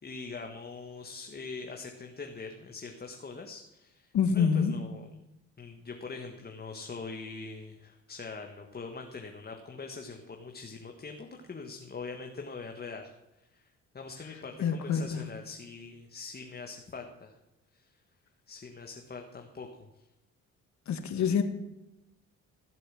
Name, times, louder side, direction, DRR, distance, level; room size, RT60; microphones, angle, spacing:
voice 1, 0.0-5.1 5.6-13.1 13.5-13.7 13.9-17.4 17.7-17.9 18.5-20.0, left 4 dB, 30° left, 3 dB, 1.6 m, -43 dB
voice 2, 4.1-4.7 14.6-15.2 20.9-21.4, left 6 dB, 70° left, 8 dB, 1.8 m, -26 dB
15.0 x 7.8 x 7.5 m, 0.96 s
cardioid pair, 90°, 30 cm